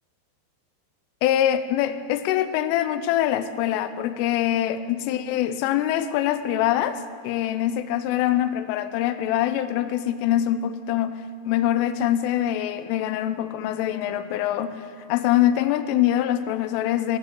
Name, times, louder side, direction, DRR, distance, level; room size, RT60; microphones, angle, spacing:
voice 1, 1.2-17.2, left 12 dB, 90° left, 11 dB, 3.2 m, -24 dB
15.5 x 8.3 x 7.2 m, 2.4 s
omnidirectional pair, 5.6 m